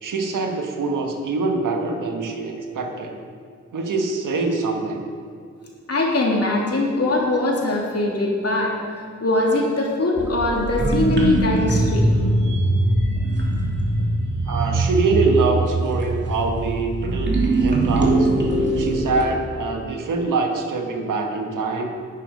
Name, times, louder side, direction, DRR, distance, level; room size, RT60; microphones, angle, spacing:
voice 1, 0.0-3.2 3.7-5.0 14.5-18.3 18.8-21.9, right 3 dB, 80° right, 3 dB, 1.5 m, -24 dB
voice 2, 5.9-8.7 9.2-12.1, left 2 dB, 50° left, -2 dB, 3.0 m, -21 dB
sound 1, 10.2-19.3, right 2 dB, 35° right, 2.6 m, -21 dB
11.0 x 9.9 x 5.3 m, 2.3 s
supercardioid pair, 45°, 31 cm